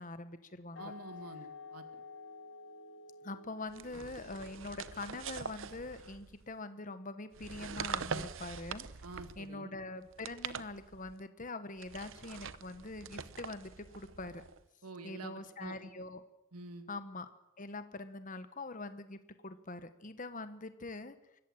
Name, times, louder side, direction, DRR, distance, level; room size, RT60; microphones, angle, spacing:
voice 1, 0.0-0.9 3.2-8.9 9.4-14.4 15.0-16.2 16.9-17.3 17.6-21.2, left 2 dB, 35° left, 11 dB, 1.2 m, -44 dB
sound 1, 0.7-6.2, left 3 dB, 55° left, 2.5 m, -52 dB
voice 2, 0.8-2.0 9.0-9.7 14.8-15.8 16.5-16.9, right 2 dB, 85° right, 8 dB, 2.1 m, -48 dB
sound 2, 3.7-6.5 7.3-9.5 10.1-11.2 11.8-14.6, right 6 dB, 60° right, 0.8 m, -44 dB
24.5 x 14.0 x 9.1 m, 0.93 s
head